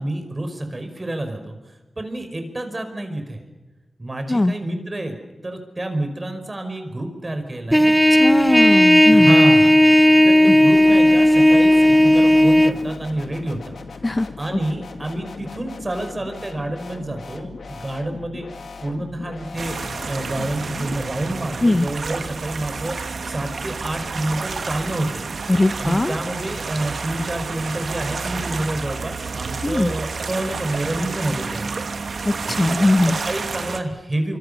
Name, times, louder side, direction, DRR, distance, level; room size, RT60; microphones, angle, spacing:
voice 1, 0.0-1.6 2.0-3.5 4.0-7.9 8.5-8.7 9.1-13.8 14.4-18.5 18.8-19.8 20.0-23.0 23.3-25.3 25.8-31.8 32.5-34.4, right 1 dB, 35° right, 6 dB, 5.3 m, -28 dB
Trumpet, 7.7-12.7, left 1 dB, 5° right, 0.9 m, -13 dB
voice 2, 8.1-9.3 10.5-10.6 14.0-14.6 21.6-21.9 25.5-26.2 29.6-29.9 32.2-33.2, left 2 dB, 30° left, 11 dB, 0.9 m, -20 dB
sound 1, 10.7-21.0, left 4 dB, 75° left, 2.0 m, -38 dB
sound 2, 19.6-33.8, right 4 dB, 70° right, 1.4 m, -30 dB
25.5 x 24.5 x 7.0 m, 1.1 s
cardioid pair, 40°, 0 cm